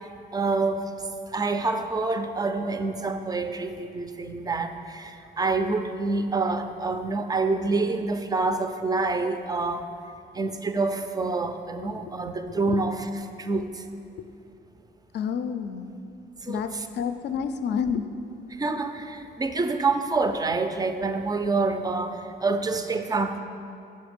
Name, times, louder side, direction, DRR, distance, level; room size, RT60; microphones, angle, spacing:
voice 1, 0.3-0.9 1.3-9.9 10.3-13.1 13.4-13.8 16.4-16.9 18.6-23.4, right 3 dB, 20° right, 8 dB, 0.4 m, -27 dB
voice 2, 15.1-15.9 16.5-18.1, left 7 dB, 60° left, 10 dB, 0.4 m, -29 dB
5.2 x 4.3 x 5.0 m, 2.6 s
cardioid pair, 90°, 20 cm